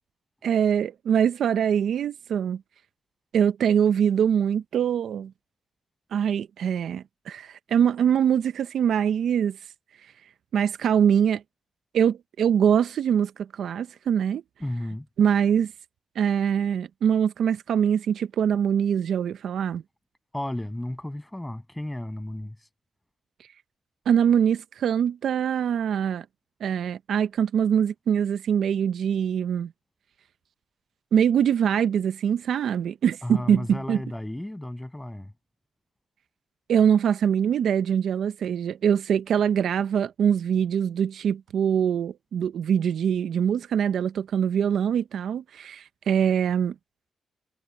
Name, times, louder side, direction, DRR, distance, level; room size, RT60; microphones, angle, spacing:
voice 1, 0.4-2.6 3.3-5.3 6.1-9.6 10.5-11.4 11.9-14.4 15.2-15.7 16.2-19.8 24.1-26.2 26.6-29.7 31.1-34.0 36.7-46.7, right 8 dB, 70° right, 0.7 m, -23 dB
voice 2, 14.6-15.1 20.3-22.6 33.2-35.3, left 1 dB, 10° left, 7.9 m, -33 dB
cardioid pair, 70°, 0 cm